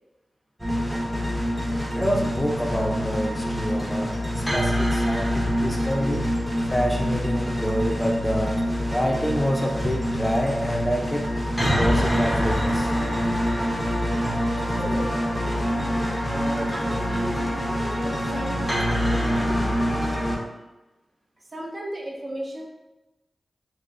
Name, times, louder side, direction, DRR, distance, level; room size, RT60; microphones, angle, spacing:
sound 1, 0.6-20.4, equal, 5° right, 0.8 m, -25 dB
voice 1, 2.0-4.1 4.5-6.3 6.7-8.5 8.9-11.3 11.8-12.9, equal, 15° left, 0 dB, 0.5 m, -27 dB
voice 2, 14.0-15.7 16.3-19.7 21.4-22.6, right 1 dB, 45° right, -1 dB, 0.7 m, -36 dB
3.8 x 2.0 x 2.5 m, 1.0 s
cardioid pair, 50°, 0 cm